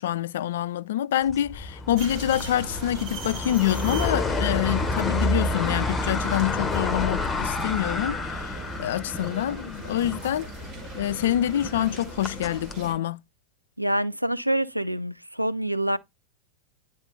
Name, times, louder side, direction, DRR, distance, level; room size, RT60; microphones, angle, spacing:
voice 1, 0.0-10.5 10.9-13.2, left 12 dB, 60° left, 0.3 m, -26 dB
sound 1, 1.3-12.8, left 2 dB, 15° left, 1.0 m, -30 dB
sound 2, 2.0-12.9, right 2 dB, 40° right, 2.2 m, -40 dB
voice 2, 13.8-16.0, right 1 dB, 90° right, 0.4 m, -26 dB
9.5 x 3.9 x 3.8 m
figure-of-eight pair, 90°, 0 cm